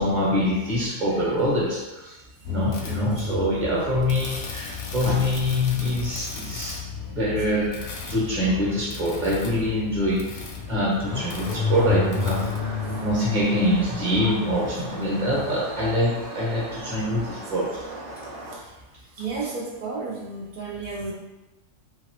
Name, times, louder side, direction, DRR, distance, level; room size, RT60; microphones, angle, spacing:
voice 1, 0.0-2.2 2.5-6.8 7.1-17.8, left 1 dB, 35° right, -6 dB, 0.9 m, -25 dB
sound 1, 2.4-13.0, left 5 dB, 65° left, 0.6 m, -31 dB
sound 2, 11.0-18.6, right 1 dB, 55° right, 1.1 m, -38 dB
voice 2, 19.2-21.1, right 4 dB, 85° right, -3 dB, 0.4 m, -32 dB
2.9 x 2.7 x 2.9 m, 1.1 s
omnidirectional pair, 1.5 m